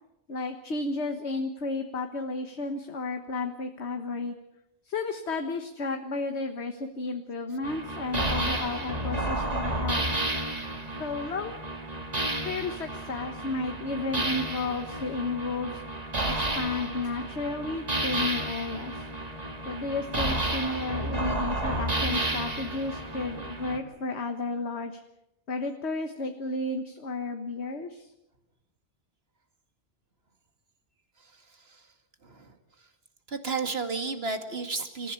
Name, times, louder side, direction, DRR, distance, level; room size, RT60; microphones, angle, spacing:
voice 1, 0.3-4.3 4.8-10.1 11.0-11.6 12.4-15.8 16.2-19.0 19.6-25.0 25.5-28.1, left 3 dB, 75° left, 6 dB, 1.7 m, -32 dB
sound 1, 7.6-23.8, right 1 dB, 35° right, 2.0 m, -31 dB
voice 2, 31.2-31.9 32.2-32.9 33.3-35.1, right 4 dB, 60° right, 7 dB, 2.4 m, -34 dB
28.0 x 15.5 x 8.2 m, 0.86 s
omnidirectional pair, 1.1 m